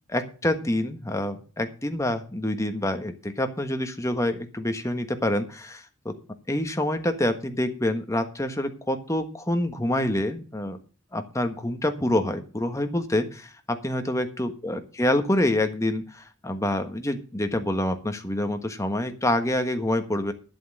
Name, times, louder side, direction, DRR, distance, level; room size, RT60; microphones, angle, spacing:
voice 1, 0.1-6.1 6.5-10.8 11.1-20.3, left 1 dB, 15° left, 7 dB, 1.4 m, -27 dB
11.5 x 7.8 x 6.5 m, 0.36 s
head